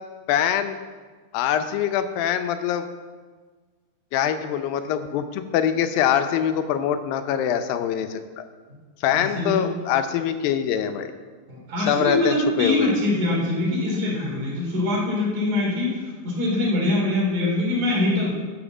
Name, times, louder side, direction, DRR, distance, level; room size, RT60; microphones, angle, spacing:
voice 1, 0.3-0.8 1.3-2.9 4.1-8.4 9.0-11.1 11.8-12.9, left 9 dB, 80° left, 9 dB, 2.3 m, -24 dB
voice 2, 9.1-9.6 11.5-18.3, left 2 dB, 55° right, -3 dB, 4.3 m, -23 dB
12.0 x 5.8 x 7.3 m, 1.4 s
omnidirectional pair, 4.3 m